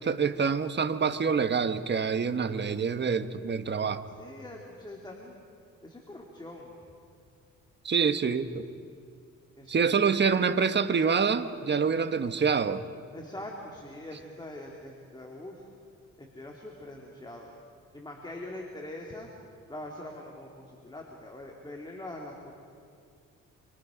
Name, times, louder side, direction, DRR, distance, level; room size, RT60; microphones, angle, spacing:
voice 1, 0.0-4.0 7.8-8.6 9.7-12.8, right 6 dB, 35° right, 10 dB, 1.3 m, -26 dB
voice 2, 4.1-5.4 5.8-6.7 9.6-10.2 13.1-15.7 16.2-17.5 17.9-19.3 19.7-22.5, left 1 dB, 15° left, -1 dB, 2.8 m, -43 dB
27.5 x 25.0 x 5.2 m, 2.4 s
cardioid pair, 90°, 30 cm